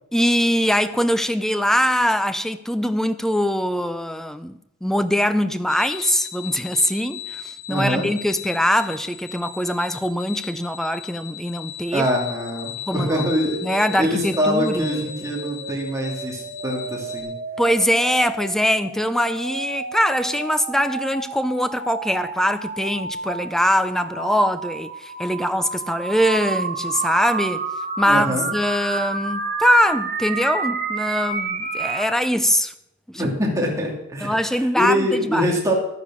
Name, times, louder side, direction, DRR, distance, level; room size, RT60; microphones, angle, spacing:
voice 1, 0.1-12.1 12.9-13.2 13.6-14.9 17.6-27.6 28.0-32.7 33.1-33.2 34.2-35.5, equal, ahead, 0.5 m, -22 dB
sound 1, 5.7-17.2, left 9 dB, 85° left, 2.8 m, -37 dB
voice 2, 7.7-8.1 11.9-13.6 14.0-17.3 28.1-28.5 33.1-35.7, equal, 15° right, 2.6 m, -24 dB
sound 2, 13.3-32.2, right 4 dB, 40° right, 1.7 m, -31 dB
12.0 x 9.8 x 6.3 m
head